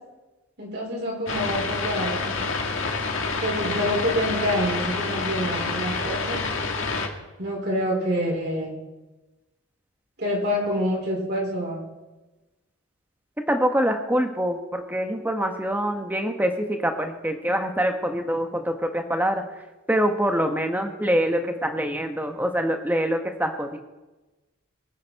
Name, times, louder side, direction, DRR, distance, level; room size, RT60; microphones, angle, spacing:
voice 1, 0.6-2.5 3.4-6.4 7.4-8.8 10.2-11.8, equal, 50° right, -2 dB, 4.7 m, -27 dB
sound 1, 1.3-7.1, left 4 dB, 65° left, 1.8 m, -28 dB
voice 2, 13.5-19.4 19.9-23.8, equal, 10° right, 5 dB, 1.2 m, -25 dB
23.5 x 9.3 x 4.2 m, 1.1 s
head